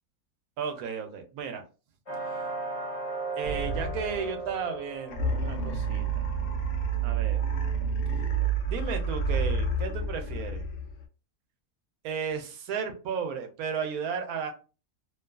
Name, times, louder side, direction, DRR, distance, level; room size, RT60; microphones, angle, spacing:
voice 1, 0.6-1.6 3.4-6.2 7.0-7.4 8.7-10.6 12.0-14.5, right 6 dB, 90° right, 6 dB, 1.1 m, -34 dB
sound 1, 2.1-7.7, right 2 dB, 30° left, 0.8 m, -38 dB
sound 2, 3.4-4.6 5.1-11.0, right 4 dB, 80° left, 0.5 m, -29 dB
2.7 x 2.3 x 2.2 m, 0.33 s
omnidirectional pair, 1.5 m